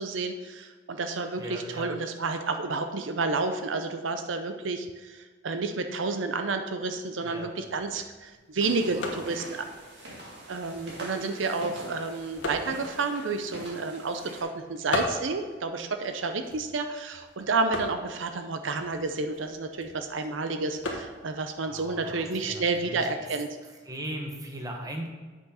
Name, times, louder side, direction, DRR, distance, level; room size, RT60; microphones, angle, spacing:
voice 1, 0.0-9.7 10.5-23.6, right 3 dB, 85° right, 7 dB, 0.6 m, -30 dB
voice 2, 1.4-1.9 7.2-7.5 8.8-9.3 21.6-23.1 23.9-25.1, right 1 dB, 20° right, 1 dB, 1.1 m, -38 dB
sound 1, 7.5-23.0, left 2 dB, 80° left, 1.3 m, -40 dB
sound 2, 8.6-14.4, right 1 dB, 65° right, 2.0 m, -44 dB
8.1 x 6.2 x 4.2 m, 1.4 s
head